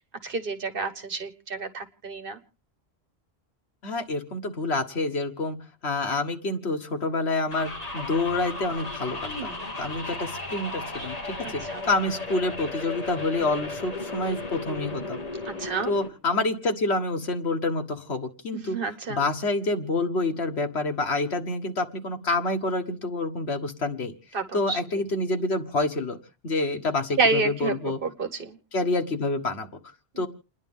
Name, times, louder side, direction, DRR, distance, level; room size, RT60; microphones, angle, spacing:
voice 1, 0.2-2.4 9.2-9.7 11.4-11.8 15.5-15.9 18.5-19.3 24.3-25.0 27.2-28.6 30.1-30.3, right 4 dB, 60° right, 8 dB, 1.4 m, -29 dB
voice 2, 3.8-5.6 5.8-9.5 9.8-15.2 15.9-18.8 19.1-24.1 24.5-26.2 26.4-28.0 28.7-29.7 30.2-30.3, left 2 dB, 85° left, 6 dB, 1.7 m, -27 dB
sound 1, 7.5-16.1, left 2 dB, 35° left, 2.2 m, -35 dB
29.5 x 10.5 x 3.6 m, 0.36 s
omnidirectional pair, 1.1 m